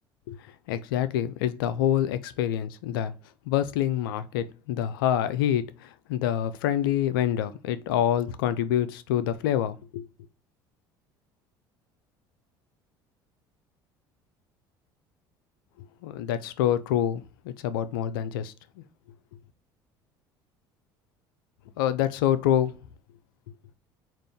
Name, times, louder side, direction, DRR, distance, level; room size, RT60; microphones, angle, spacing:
voice 1, 0.7-3.1 3.5-10.1 16.0-18.5 21.8-22.7, left 10 dB, 80° left, 0.4 m, -26 dB
3.7 x 2.5 x 3.4 m
hypercardioid pair, 70°, 11 cm